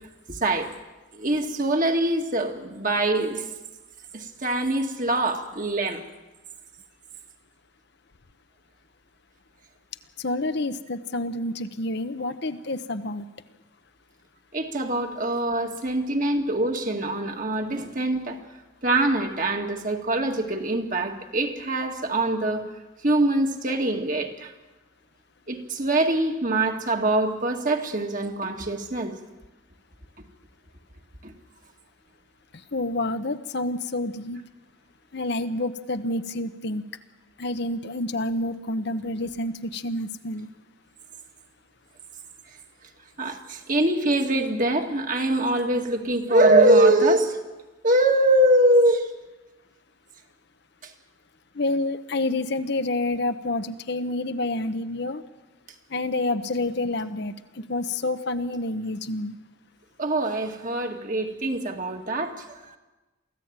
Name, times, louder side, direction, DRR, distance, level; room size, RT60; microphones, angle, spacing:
voice 1, 0.3-0.7 1.1-3.4 4.1-6.0 14.5-18.4 18.8-22.6 23.0-24.5 25.5-29.1 31.2-31.3 43.2-47.4 47.8-49.1 50.8-50.9 60.0-62.8, right 1 dB, 40° right, 3 dB, 2.1 m, -23 dB
voice 2, 10.2-13.3 32.5-34.5 35.1-36.8 37.4-40.5 51.5-55.2 55.9-59.3, left 2 dB, 55° left, 10 dB, 0.9 m, -28 dB
23.5 x 15.5 x 8.9 m, 1.1 s
head